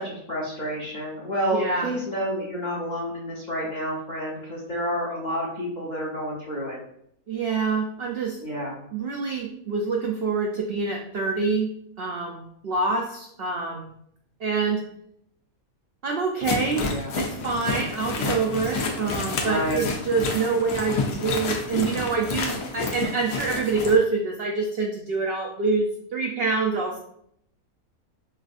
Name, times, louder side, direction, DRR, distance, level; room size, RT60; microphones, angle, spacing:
voice 1, 0.0-6.8 8.4-8.7 16.8-17.1 19.4-19.8, equal, 40° left, -4 dB, 0.7 m, -29 dB
voice 2, 1.5-1.9 7.3-8.4 8.9-11.7 12.0-13.9 14.4-14.8 16.0-27.0, right 4 dB, 70° right, 0 dB, 0.5 m, -26 dB
sound 1, 16.4-24.0, left 3 dB, 80° left, 1.2 m, -29 dB
5.4 x 2.5 x 2.5 m, 0.70 s
omnidirectional pair, 1.6 m